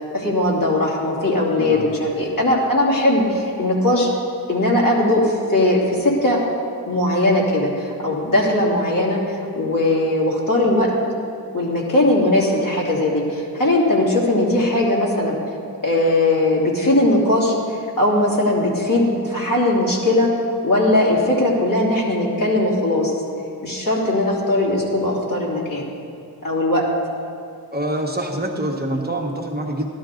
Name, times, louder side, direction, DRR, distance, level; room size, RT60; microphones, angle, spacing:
voice 1, 0.1-4.1 4.5-6.4 6.8-10.9 11.5-15.4 15.8-20.3 20.6-23.1 23.6-25.9 26.4-26.9, left 1 dB, 55° left, -4 dB, 2.8 m, -19 dB
voice 2, 27.7-29.9, right 1 dB, 25° right, 0 dB, 1.1 m, -25 dB
12.5 x 12.0 x 3.8 m, 2.4 s
wide cardioid pair, 60°, 38 cm